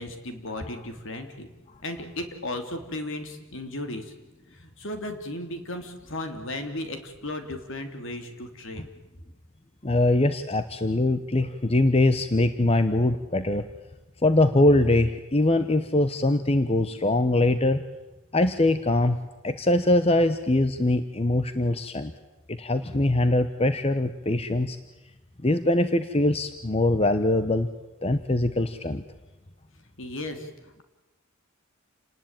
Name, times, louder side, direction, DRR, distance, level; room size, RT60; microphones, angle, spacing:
voice 1, 0.0-1.5 1.8-4.1 4.5-8.9 30.0-30.5, left 1 dB, 60° left, 6 dB, 3.2 m, -35 dB
voice 2, 9.8-13.7 14.2-17.8 18.3-19.2 19.4-22.1 22.5-24.8 25.4-27.7 28.0-29.0, left 2 dB, 30° left, 10 dB, 1.0 m, -22 dB
29.0 x 19.5 x 9.0 m, 1.1 s
head